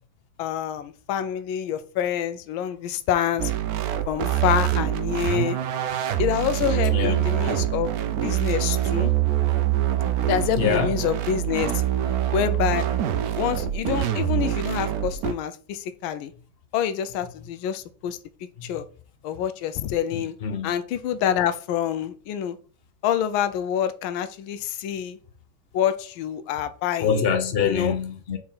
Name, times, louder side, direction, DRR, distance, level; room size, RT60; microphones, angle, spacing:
voice 1, 0.4-3.5 4.1-5.6 6.2-9.1 10.3-11.8 12.3-12.9 13.4-16.3 16.7-18.2 18.6-18.9 19.2-20.3 20.6-22.6 23.0-25.2 25.7-27.2 27.6-28.0, left 9 dB, 85° left, 1.4 m, -27 dB
sound 1, 3.4-15.3, right 12 dB, 70° right, 0.9 m, -25 dB
voice 2, 6.9-7.3 10.6-10.9 18.6-18.8 20.1-20.7 27.0-28.4, left 6 dB, 50° left, 0.7 m, -25 dB
4.8 x 4.4 x 5.5 m
omnidirectional pair, 2.2 m